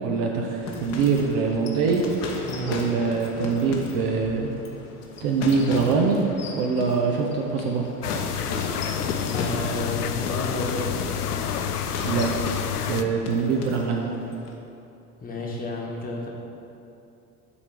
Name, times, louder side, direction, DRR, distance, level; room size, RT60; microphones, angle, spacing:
voice 1, 0.0-2.0 2.6-4.5 5.2-6.2 6.5-7.9 12.0-12.3 12.9-14.1, right 5 dB, 50° right, 0 dB, 0.9 m, -23 dB
sound 1, 0.6-14.6, left 3 dB, 35° left, 1.0 m, -36 dB
sound 2, 8.0-13.0, left 8 dB, 80° left, 0.5 m, -29 dB
voice 2, 9.2-10.9 15.2-16.3, left 2 dB, 20° left, -2 dB, 1.4 m, -31 dB
7.0 x 4.5 x 6.8 m, 2.7 s
figure-of-eight pair, 70°, 45 cm